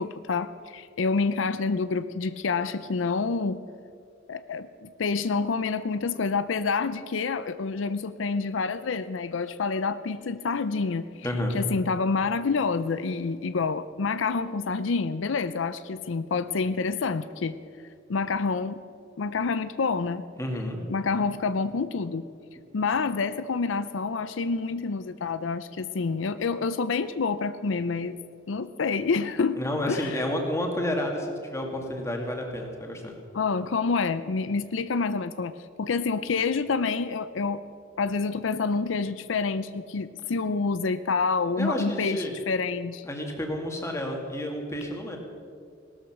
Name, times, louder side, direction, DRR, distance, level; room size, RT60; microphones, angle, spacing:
voice 1, 0.0-3.6 4.3-11.3 11.5-17.6 18.1-18.8 19.2-20.2 20.9-22.2 22.7-28.2 28.5-29.6 29.9-30.2 33.3-35.5 35.8-37.6 38.0-43.0, left 4 dB, 85° left, 13 dB, 0.5 m, -28 dB
voice 2, 11.2-11.6 20.4-20.8 29.6-33.1 41.6-42.4 43.0-45.2, left 1 dB, 15° left, 1 dB, 2.1 m, -30 dB
18.0 x 13.0 x 6.0 m, 2.3 s
head